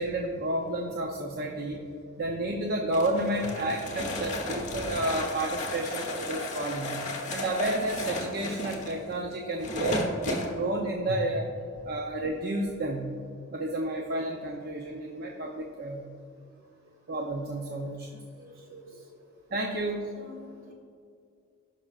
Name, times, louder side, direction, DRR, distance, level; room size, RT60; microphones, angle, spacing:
voice 1, 0.0-1.8 2.2-6.9 7.3-11.4 11.8-13.1 13.5-16.0 17.1-18.1 19.5-20.1, right 1 dB, 45° right, 0 dB, 0.6 m, -31 dB
sound 1, 2.9-10.5, left 1 dB, 35° left, 1.3 m, -34 dB
voice 2, 4.6-5.0 18.4-19.1 20.1-20.7, equal, 65° right, -1 dB, 2.1 m, -46 dB
16.5 x 5.8 x 2.4 m, 2.4 s
head